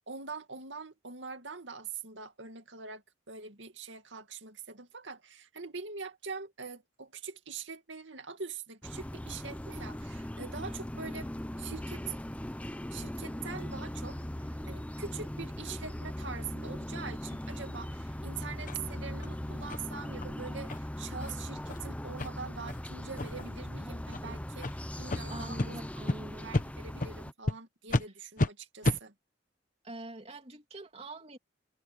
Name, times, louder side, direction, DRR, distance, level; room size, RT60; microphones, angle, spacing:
voice 1, 0.1-11.3 11.6-12.2 12.9-25.8 26.4-29.1, right 5 dB, 90° right, 2.3 m, -43 dB
sound 1, 8.8-27.3, left 1 dB, 10° left, 0.7 m, -39 dB
sound 2, 18.7-18.8 19.2-19.3 19.7-19.8 20.2-20.3 20.7-20.8 21.2-21.3 21.7-21.8 22.2-22.3 22.7-22.8 23.2-23.5 24.1-24.2 24.6-24.7 25.1-25.2 25.6-25.7 26.1-26.2 26.5-26.7 27.0-27.1 27.5-27.6 27.9-28.1 28.4-28.5 28.8-29.0, left 2 dB, 45° left, 1.0 m, -30 dB
voice 2, 25.3-26.5 29.8-31.4, right 2 dB, 35° right, 3.1 m, -44 dB
head